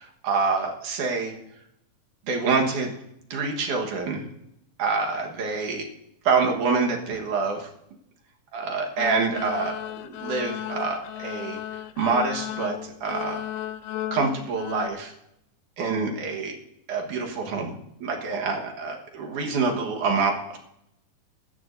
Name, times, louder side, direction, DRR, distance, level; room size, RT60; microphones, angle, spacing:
voice 1, 0.0-1.3 2.3-2.9 3.3-4.3 4.8-5.9 6.2-7.7 8.5-13.4 14.1-15.2 15.8-16.6 16.9-17.7 18.0-20.6, right 4 dB, 75° right, 1 dB, 2.9 m, -26 dB
sound 1, 9.0-14.9, left 12 dB, 80° left, 2.0 m, -34 dB
23.0 x 12.0 x 2.7 m, 0.80 s
omnidirectional pair, 3.7 m